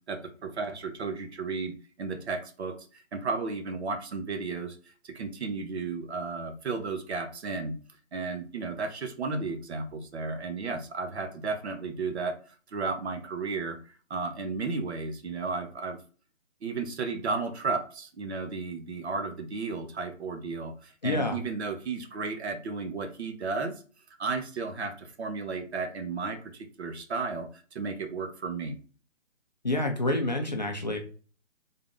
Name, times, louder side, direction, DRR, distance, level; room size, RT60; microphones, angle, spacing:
voice 1, 0.1-1.7 2.0-7.7 8.1-16.0 16.6-23.7 24.2-28.8, right 4 dB, 55° right, 7 dB, 0.8 m, -34 dB
voice 2, 21.0-21.4 29.6-31.0, left 2 dB, 35° left, 3 dB, 0.4 m, -28 dB
3.7 x 2.6 x 3.7 m, 0.39 s
hypercardioid pair, 160°, 39 cm